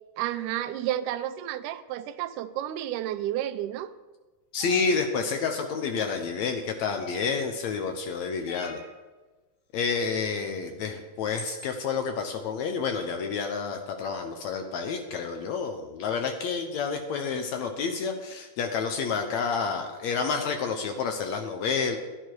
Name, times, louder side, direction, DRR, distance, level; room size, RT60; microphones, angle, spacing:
voice 1, 0.2-3.9, right 12 dB, 80° right, 10 dB, 2.0 m, -31 dB
voice 2, 4.5-8.8 9.7-22.0, left 5 dB, 70° left, 5 dB, 1.8 m, -29 dB
sound 1, 4.6-4.9 7.0-7.4 8.5-8.9 10.6-10.7 11.3-11.7, left 3 dB, 90° left, 3.5 m, -41 dB
11.5 x 11.0 x 4.6 m, 1.2 s
omnidirectional pair, 3.9 m